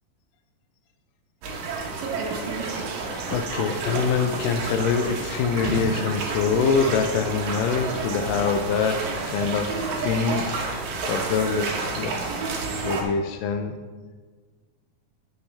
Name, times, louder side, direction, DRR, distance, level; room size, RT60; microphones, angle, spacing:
sound 1, 1.4-13.0, right 3 dB, 70° right, 2.7 m, -30 dB
voice 1, 3.3-9.0 9.3-10.4 11.1-11.7 12.0-12.3 12.8-13.8, left 6 dB, 85° left, 6 dB, 2.0 m, -24 dB
15.0 x 5.8 x 3.3 m, 1.5 s
omnidirectional pair, 4.4 m